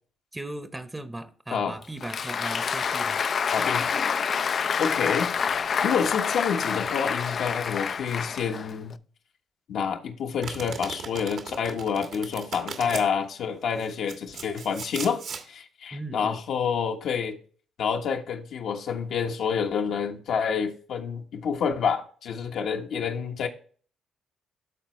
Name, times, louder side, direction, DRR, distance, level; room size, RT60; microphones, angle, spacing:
voice 1, 0.3-3.2 15.9-16.4, right 1 dB, 10° right, 0.9 m, -37 dB
Applause, 1.8-8.9, left 6 dB, 50° left, 0.4 m, -27 dB
voice 2, 3.5-3.9 4.8-5.4 5.8-9.0 9.7-17.4 17.8-23.5, left 6 dB, 70° left, 1.2 m, -28 dB
Domestic sounds home sounds, 10.4-13.1 13.8-15.4, right 6 dB, 65° right, 1.5 m, -38 dB
12.5 x 4.2 x 3.2 m
cardioid pair, 90°, 0 cm